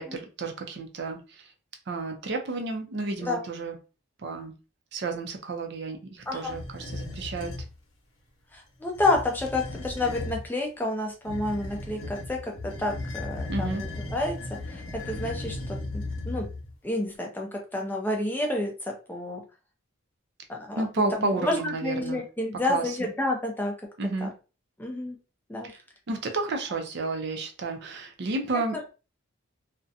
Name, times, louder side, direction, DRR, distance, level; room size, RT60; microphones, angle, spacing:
voice 1, 0.0-1.5 1.9-3.8 4.2-4.5 4.9-7.5 13.5-13.8 20.8-22.2 22.7-23.1 24.0-24.3 25.6-25.8 26.1-28.8, right 3 dB, 55° right, 5 dB, 0.5 m, -31 dB
sound 1, 6.4-7.7 8.8-10.5 11.2-16.7, left 2 dB, 90° left, 0.8 m, -36 dB
voice 2, 8.5-12.4 12.6-14.4 14.7-15.6 15.9-16.5 16.8-18.7 19.1-19.4 20.5-20.9 21.2-23.7 24.2-24.3 24.8-25.2 25.5-25.7, left 2 dB, 10° left, 1 dB, 0.4 m, -29 dB
2.4 x 2.1 x 2.6 m, 0.33 s
head